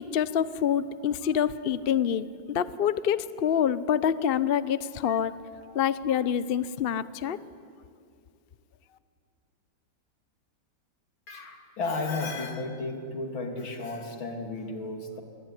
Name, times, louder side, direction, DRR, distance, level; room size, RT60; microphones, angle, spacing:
voice 1, 0.0-5.4 5.7-7.4, left 9 dB, 60° left, 15 dB, 0.6 m, -26 dB
voice 2, 11.3-15.2, left 3 dB, 85° left, 3 dB, 3.6 m, -33 dB
27.0 x 22.0 x 9.9 m, 2.5 s
omnidirectional pair, 2.1 m